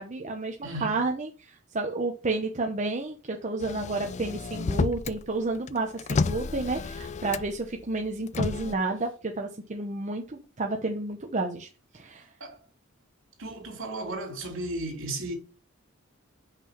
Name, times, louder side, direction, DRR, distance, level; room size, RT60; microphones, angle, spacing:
voice 1, 0.0-11.7 11.9-12.2, right 3 dB, 35° right, 0.9 m, -31 dB
voice 2, 0.6-1.0 12.4-12.6 13.4-15.3, right 2 dB, 70° right, 3.1 m, -34 dB
Motor vehicle (road), 3.6-5.2 5.5-7.7 8.3-8.7, left 4 dB, 35° left, 0.3 m, -30 dB
5.8 x 5.7 x 5.8 m
head